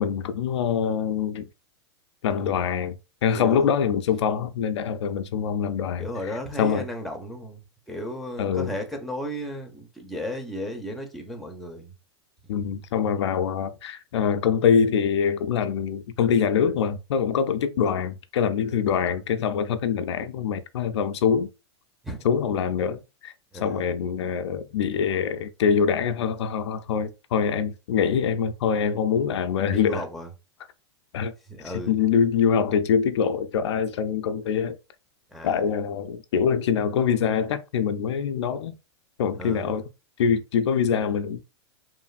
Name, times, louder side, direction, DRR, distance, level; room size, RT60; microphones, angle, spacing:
voice 1, 0.0-1.5 2.2-6.1 6.6-6.9 8.4-8.8 12.5-21.5 22.2-23.3 23.6-30.0 31.1-31.3 31.9-34.8 35.4-38.8 39.2-39.8 40.2-41.4, left 7 dB, 80° left, 0.4 m, -24 dB
voice 2, 3.3-3.7 6.0-7.6 7.9-11.9 22.0-22.2 23.5-23.8 29.5-30.3 31.5-31.9 35.3-35.6 39.3-39.8, equal, ahead, 0.6 m, -34 dB
3.0 x 2.5 x 2.4 m
hypercardioid pair, 125°, 14 cm